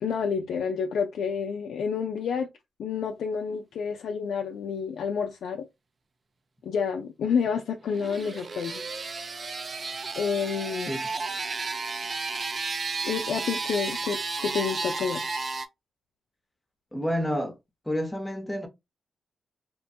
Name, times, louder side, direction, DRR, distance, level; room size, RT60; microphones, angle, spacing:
voice 1, 0.0-2.5 2.8-5.7 6.6-8.8 10.2-10.9 13.0-15.2, left 6 dB, 85° left, 0.3 m, -29 dB
sound 1, 7.8-15.7, right 4 dB, 45° right, 0.4 m, -33 dB
voice 2, 16.9-17.6 17.9-18.7, equal, 10° left, 0.7 m, -29 dB
2.9 x 2.1 x 2.6 m
cardioid pair, 75°, 0 cm